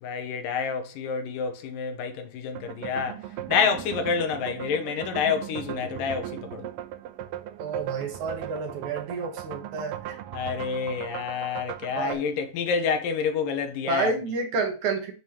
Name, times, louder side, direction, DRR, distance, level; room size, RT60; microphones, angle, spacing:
voice 1, 0.0-6.7 10.3-14.1, left 6 dB, 75° left, 2.6 m, -28 dB
sound 1, 2.5-12.1, right 12 dB, 80° right, 2.3 m, -37 dB
voice 2, 7.6-10.2 12.0-12.2 13.9-15.1, right 4 dB, 65° right, 2.6 m, -30 dB
9.2 x 5.4 x 3.0 m
omnidirectional pair, 4.0 m